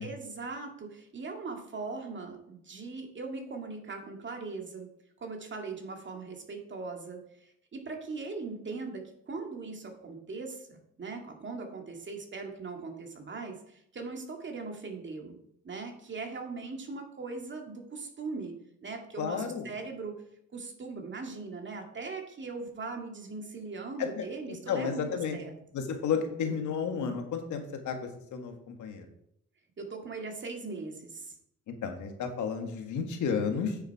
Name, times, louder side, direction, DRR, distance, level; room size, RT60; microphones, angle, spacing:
voice 1, 0.0-4.9 5.2-15.4 15.6-20.2 20.5-25.6 29.8-31.3, right 4 dB, 40° right, 3 dB, 2.1 m, -40 dB
voice 2, 19.2-19.7 24.0-25.4 25.7-29.0 31.7-33.8, left 6 dB, 75° left, 5 dB, 1.6 m, -32 dB
9.0 x 6.5 x 4.7 m, 0.74 s
cardioid pair, 90°, 30 cm